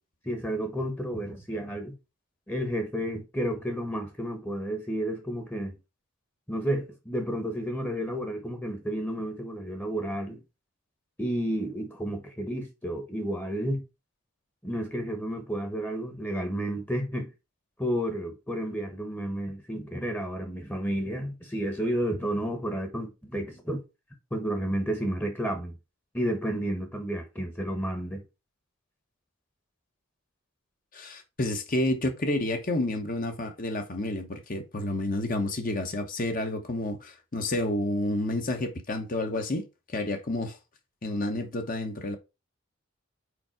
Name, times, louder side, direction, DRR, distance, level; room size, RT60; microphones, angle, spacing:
voice 1, 0.2-1.9 2.5-5.7 6.5-10.4 11.2-13.8 14.6-17.3 17.8-23.8 24.3-25.7 26.1-28.2, right 1 dB, 10° left, 1.0 m, -31 dB
voice 2, 30.9-39.6 39.9-40.6 41.0-42.2, left 1 dB, 40° left, 1.0 m, -30 dB
5.0 x 4.8 x 4.6 m
head